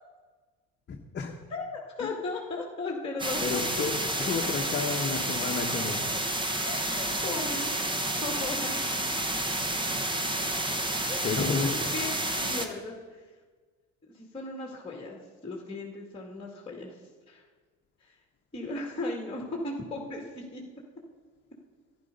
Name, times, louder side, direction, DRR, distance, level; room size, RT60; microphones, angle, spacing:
voice 1, 0.9-1.4 3.4-6.1 11.2-11.7, left 5 dB, 30° left, 1 dB, 1.3 m, -31 dB
voice 2, 1.5-3.8 5.8-5.9 6.7-7.9 8.2-8.8 11.1-13.2 14.1-16.9 17.3-17.4 18.0-18.2 18.5-20.6, left 2 dB, 15° left, 0 dB, 2.2 m, -37 dB
sound 1, 3.2-12.7, right 1 dB, 15° right, 1.2 m, -30 dB
11.0 x 10.5 x 5.3 m, 1.4 s
supercardioid pair, 90°, 35 cm